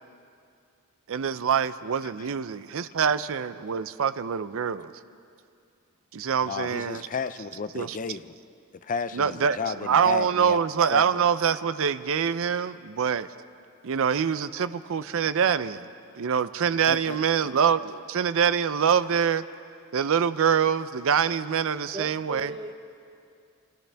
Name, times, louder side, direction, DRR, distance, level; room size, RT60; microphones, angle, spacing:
voice 1, 1.1-4.9 6.1-7.0 7.7-8.0 9.1-13.3 13.8-15.9 16.2-19.4 19.9-22.5, right 7 dB, 65° right, 14 dB, 0.5 m, -25 dB
voice 2, 6.4-8.4 8.8-10.6 10.9-11.3 16.9-17.5, left 5 dB, 40° left, 11 dB, 0.5 m, -33 dB
voice 3, 21.9-22.7, right 2 dB, 20° right, 7 dB, 1.0 m, -36 dB
28.5 x 26.0 x 3.4 m, 2.4 s
head